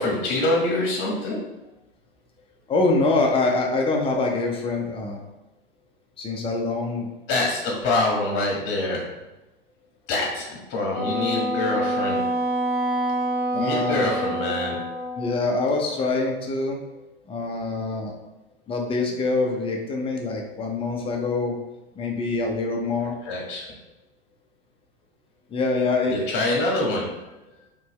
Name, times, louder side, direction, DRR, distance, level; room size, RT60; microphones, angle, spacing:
voice 1, 0.0-1.6 7.3-9.2 10.1-12.4 13.5-14.8 23.0-23.7 26.1-27.4, left 2 dB, 35° left, -2 dB, 1.2 m, -25 dB
voice 2, 2.7-5.2 6.2-7.1 13.5-14.0 15.2-16.8 17.3-18.1 18.7-21.6 21.9-23.1 25.5-26.3, left 3 dB, 20° left, 1 dB, 0.7 m, -25 dB
Wind instrument woodwind instrument, 10.9-15.4, right 1 dB, ahead, 1.1 m, -26 dB
4.3 x 3.2 x 3.0 m, 0.98 s
hypercardioid pair, 100°, 31 cm